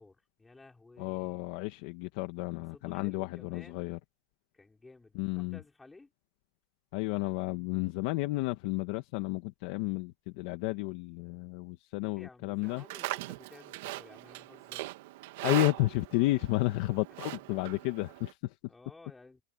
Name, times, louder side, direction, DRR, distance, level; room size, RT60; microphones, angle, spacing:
voice 1, 0.0-1.5 2.6-4.0 4.5-6.1 12.1-14.9 17.2-17.6 18.7-19.4, left 3 dB, 10° left, 5.4 m, -55 dB
voice 2, 1.0-4.0 5.1-5.6 6.9-12.8 15.4-18.5, left 20 dB, 55° left, 1.6 m, -32 dB
Livestock farm animals working animals, 12.6-18.3, right 19 dB, 60° right, 1.6 m, -40 dB
supercardioid pair, 155°, 0 cm